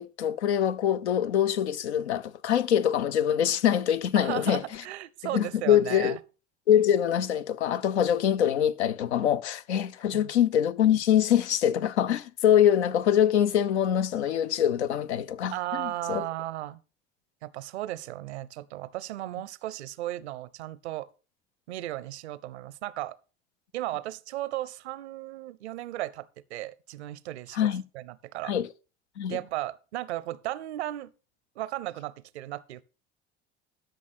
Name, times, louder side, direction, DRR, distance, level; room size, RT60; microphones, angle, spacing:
voice 1, 0.0-4.6 5.3-6.2 6.7-16.3 27.5-27.8 28.4-28.7 29.2-29.4, left 10 dB, 85° left, 0.6 m, -24 dB
voice 2, 4.2-6.2 10.1-10.3 15.5-16.8 17.4-21.1 21.7-23.2 23.7-27.7 27.9-28.5 29.3-31.1 31.6-32.8, right 15 dB, 80° right, 0.6 m, -35 dB
12.5 x 6.1 x 4.2 m
hypercardioid pair, 70°, 33 cm